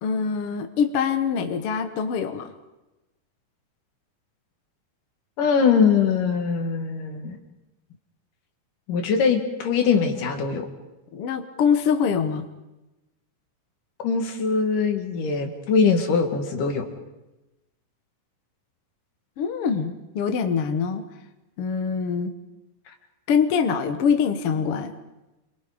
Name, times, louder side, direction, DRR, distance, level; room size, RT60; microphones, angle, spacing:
voice 1, 0.0-2.5 11.1-12.5 19.4-21.0 21.6-22.3 23.3-24.9, left 6 dB, 55° left, 7 dB, 1.8 m, -24 dB
voice 2, 5.4-7.4 8.9-10.7 14.0-16.9 22.9-23.0, left 5 dB, 70° left, 5 dB, 3.6 m, -22 dB
29.0 x 23.0 x 5.1 m, 1.0 s
omnidirectional pair, 3.9 m